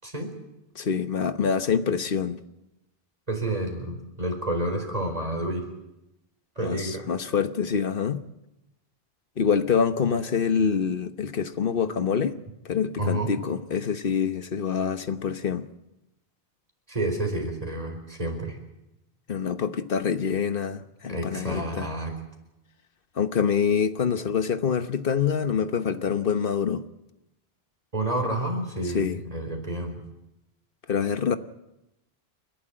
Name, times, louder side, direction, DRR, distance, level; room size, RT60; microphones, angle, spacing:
voice 1, 0.0-0.4 3.3-5.7 6.6-7.1 13.0-13.3 16.9-18.6 21.1-22.1 27.9-30.0, right 1 dB, 35° right, 4.6 m, -29 dB
voice 2, 0.7-2.4 6.6-8.2 9.4-12.3 12.6-15.7 19.3-21.9 23.2-26.8 28.9-29.2 30.9-31.4, left 6 dB, 60° left, 1.2 m, -26 dB
30.0 x 11.5 x 8.9 m
omnidirectional pair, 1.1 m